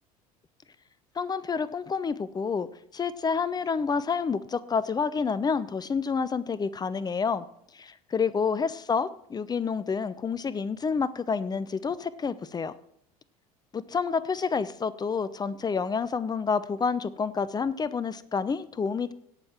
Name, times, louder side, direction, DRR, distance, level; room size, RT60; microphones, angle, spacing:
voice 1, 1.2-2.7 2.9-7.4 7.7-12.7 13.7-19.1, left 5 dB, 20° left, 16 dB, 0.6 m, -29 dB
17.5 x 6.6 x 4.4 m, 0.71 s
figure-of-eight pair, 65°, 19 cm